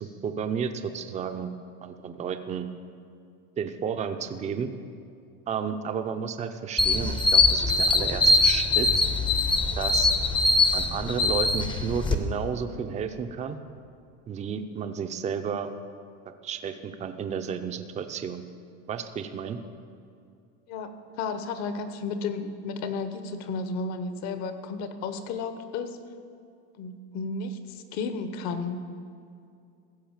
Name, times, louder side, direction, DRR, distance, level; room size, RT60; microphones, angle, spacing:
voice 1, 0.0-1.5 1.8-2.7 3.6-4.7 5.5-8.9 9.8-10.1 10.7-13.6 14.3-15.7 16.4-18.4 18.9-19.6, right 7 dB, 20° right, 8 dB, 0.6 m, -32 dB
sound 1, 6.8-12.1, left 3 dB, 15° left, 0.7 m, -22 dB
voice 2, 21.2-26.0 26.8-28.8, left 4 dB, 55° left, 9 dB, 1.1 m, -33 dB
15.5 x 5.6 x 7.3 m, 2.4 s
supercardioid pair, 140°, 33 cm